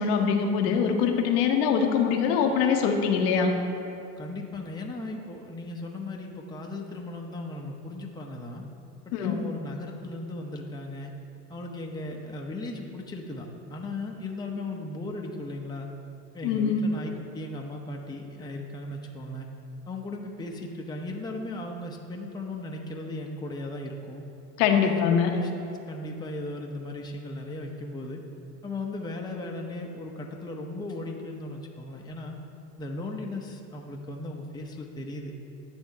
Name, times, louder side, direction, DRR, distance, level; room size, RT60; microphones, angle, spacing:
voice 1, 0.0-3.5 9.1-9.4 16.4-16.9 24.6-25.3, left 6 dB, 70° left, 3 dB, 0.9 m, -23 dB
voice 2, 4.2-8.6 9.1-11.1 11.5-15.9 16.3-19.5 19.9-24.2 24.7-28.2 28.6-32.4 32.8-35.3, left 2 dB, 10° left, 1 dB, 0.7 m, -37 dB
8.8 x 3.5 x 6.4 m, 2.7 s
hypercardioid pair, 80°, 50 cm